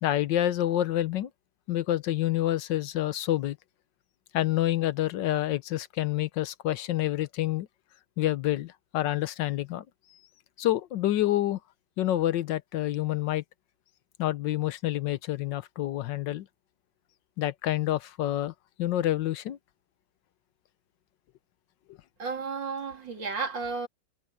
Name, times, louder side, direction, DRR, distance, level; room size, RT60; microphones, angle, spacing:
voice 1, 0.0-1.3 1.7-3.6 4.3-7.7 8.2-9.8 10.6-11.6 12.0-13.4 14.2-16.5 17.4-18.5 18.8-19.6, left 13 dB, 80° left, 1.5 m, -28 dB
voice 2, 22.2-23.9, right 4 dB, 85° right, 3.8 m, -33 dB
omnidirectional pair, 1.9 m